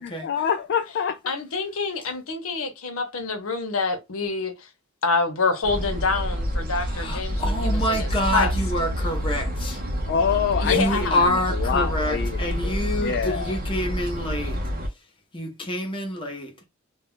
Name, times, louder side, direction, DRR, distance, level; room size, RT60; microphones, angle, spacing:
voice 1, 0.0-1.3 10.1-13.8, left 7 dB, 55° left, 0.3 m, -27 dB
voice 2, 1.3-4.7 5.0-8.5 10.6-11.2, left 4 dB, 85° left, 0.7 m, -26 dB
sound 1, 5.6-14.9, equal, 45° right, 0.6 m, -28 dB
voice 3, 6.8-9.8 10.7-14.6 15.3-16.5, left 1 dB, 25° left, 0.7 m, -27 dB
2.3 x 2.1 x 3.5 m
head